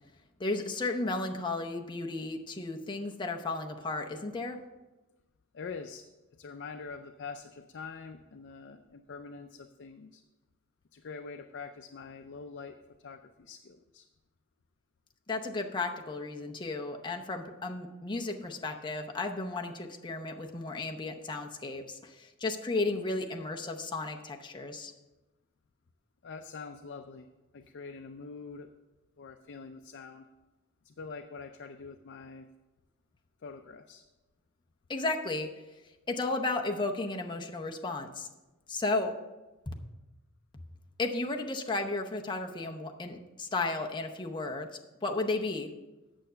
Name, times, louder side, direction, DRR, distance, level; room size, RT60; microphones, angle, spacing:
voice 1, 0.4-4.6 15.3-24.9 34.9-35.5 36.1-38.3 38.7-39.1 39.7-39.8 41.0-45.7, left 2 dB, 20° left, 2 dB, 0.7 m, -34 dB
voice 2, 5.5-6.1 6.3-10.2 10.9-14.1 26.2-27.3 27.5-28.7 29.2-30.3 30.8-32.5 33.4-34.0, left 4 dB, 55° left, 6 dB, 0.5 m, -45 dB
8.9 x 6.7 x 5.7 m, 1.1 s
head